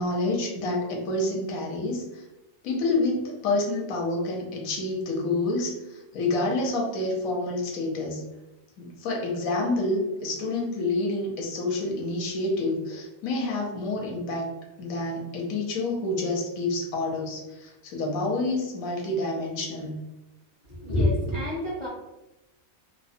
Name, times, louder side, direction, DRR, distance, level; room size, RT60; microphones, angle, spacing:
voice 1, 0.0-2.2 2.6-8.2 8.8-14.5 14.8-20.0, left 2 dB, 75° left, -1 dB, 1.1 m, -28 dB
voice 2, 20.7-21.9, left 1 dB, 60° left, -7 dB, 0.4 m, -26 dB
2.8 x 2.0 x 2.6 m, 0.99 s
omnidirectional pair, 1.5 m